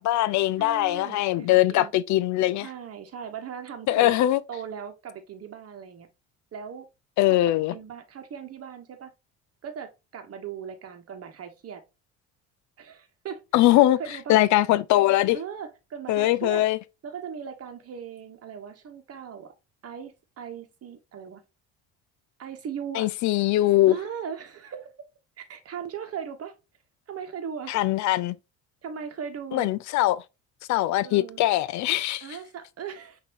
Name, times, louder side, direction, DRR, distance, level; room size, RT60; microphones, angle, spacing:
voice 1, 0.0-2.7 3.9-4.4 7.2-7.7 13.5-14.0 14.3-15.4 16.1-16.8 23.0-23.9 27.7-28.3 29.5-30.2 30.7-32.2, left 15 dB, 55° left, 0.4 m, -21 dB
voice 2, 0.6-1.9 2.6-4.2 4.5-6.1 6.5-6.9 7.3-9.1 9.6-11.8 12.8-13.7 14.0-14.4 15.3-16.7 17.0-19.5 19.8-21.4 22.4-23.1 23.9-24.9 25.4-26.6 27.1-27.8 28.8-29.7 31.0-31.4 32.2-33.2, right 7 dB, 45° right, 1.2 m, -38 dB
5.8 x 2.8 x 2.9 m
hypercardioid pair, 60°, 34 cm